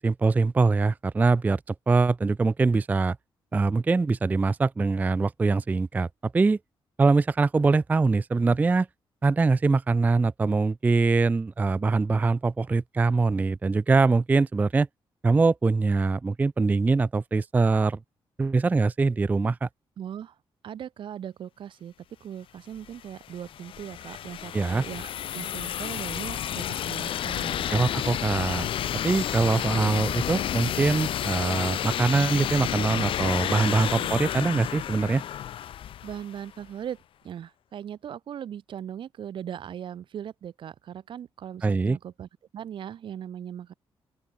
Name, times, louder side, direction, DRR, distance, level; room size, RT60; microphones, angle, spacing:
voice 1, 0.0-3.2 3.5-6.6 7.0-8.9 9.2-14.9 15.2-18.0 18.4-19.7 24.5-24.8 27.7-28.7 29.0-35.2 41.6-42.0, right 3 dB, 15° right, 0.3 m, -23 dB
voice 2, 20.0-20.4 20.6-21.9 22.2-27.9 33.9-34.2 36.0-43.7, right 9 dB, 60° right, 0.7 m, -39 dB
sound 1, 22.8-36.5, left 11 dB, 70° left, 0.5 m, -31 dB
open air
wide cardioid pair, 160°, 10 cm